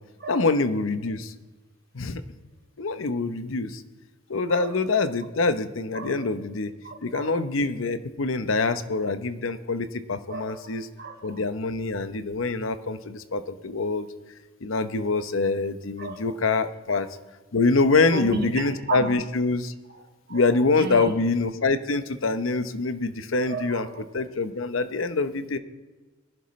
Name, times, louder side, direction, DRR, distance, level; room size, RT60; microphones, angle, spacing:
voice 1, 0.3-1.3 1.9-2.2 2.8-3.8 4.3-6.7 7.0-10.9 11.2-14.1 14.6-17.1 17.5-19.7 20.3-23.9 24.1-25.6, left 3 dB, 85° left, 12 dB, 0.8 m, -25 dB
voice 2, 6.8-7.4 10.3-11.4 16.0-16.4 16.9-17.0 18.1-19.1 19.9-20.0 20.3-21.1 23.5-24.0, right 4 dB, 55° right, 3 dB, 1.9 m, -34 dB
21.5 x 11.0 x 3.2 m, 1.2 s
head